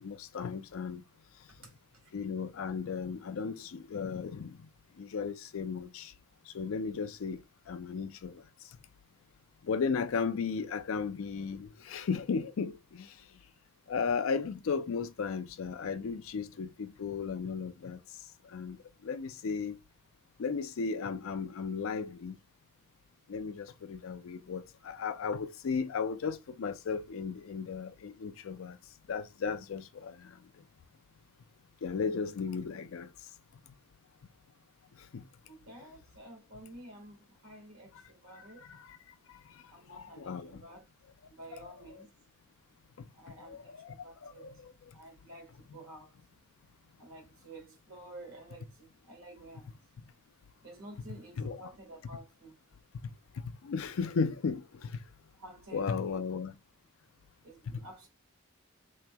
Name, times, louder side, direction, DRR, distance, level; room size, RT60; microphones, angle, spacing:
voice 1, 0.0-1.0 2.1-4.6 5.0-6.1 6.5-7.4 7.7-8.4 9.6-13.1 13.9-18.0 18.5-18.8 19.0-19.8 20.4-22.4 23.3-28.8 29.1-30.3 31.8-33.1 35.1-35.2 38.7-39.0 39.9-40.6 41.5-41.7 43.5-43.9 44.2-44.7 51.4-51.6 53.6-55.0 55.7-56.6 57.7-57.8, left 5 dB, 80° left, 0.4 m, -35 dB
voice 2, 35.5-38.7 39.7-40.8 41.3-42.1 43.1-44.5 44.9-46.1 47.0-49.7 50.6-52.5 55.3-56.3 57.4-58.1, right 2 dB, 90° right, 1.6 m, -51 dB
3.4 x 2.9 x 2.2 m
head